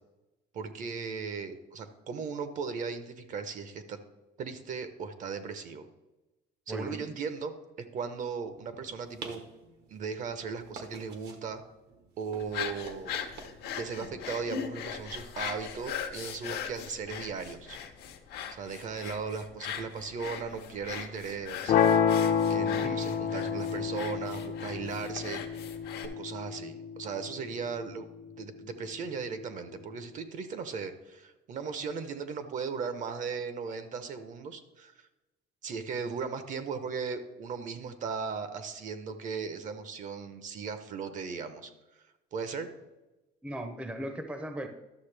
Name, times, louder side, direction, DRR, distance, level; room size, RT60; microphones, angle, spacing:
voice 1, 0.5-4.0 4.4-5.9 6.7-7.5 7.8-9.4 9.9-11.6 12.2-13.1 13.7-17.8 18.5-21.8 22.5-25.4 26.2-28.1 28.4-35.1 35.6-42.7, right 5 dB, 50° right, 10 dB, 0.8 m, -37 dB
voice 2, 6.7-7.0 22.8-23.1 43.4-44.7, right 1 dB, 5° right, 7 dB, 0.6 m, -37 dB
sound 1, 8.5-16.0, right 4 dB, 75° right, 1.2 m, -50 dB
sound 2, 12.4-26.1, left 8 dB, 70° left, 0.9 m, -40 dB
sound 3, 21.7-27.7, left 7 dB, 50° left, 0.6 m, -29 dB
11.5 x 6.6 x 3.3 m, 1.0 s
cardioid pair, 145°, 17 cm